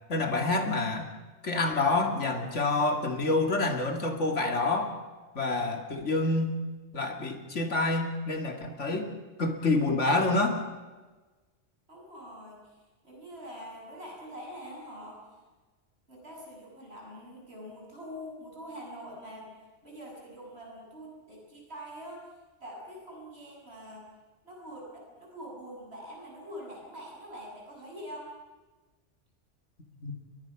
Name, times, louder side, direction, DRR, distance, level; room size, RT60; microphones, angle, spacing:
voice 1, 0.1-1.1 1.4-5.0 5.3-6.5 6.9-9.1 9.4-10.6 30.0-30.2, left 2 dB, 80° left, 5 dB, 2.6 m, -27 dB
voice 2, 11.9-15.2 16.1-19.5 19.8-22.3 22.6-24.1 24.4-28.3, equal, 60° right, -2 dB, 7.3 m, -44 dB
30.0 x 21.5 x 5.9 m, 1.3 s
omnidirectional pair, 1.2 m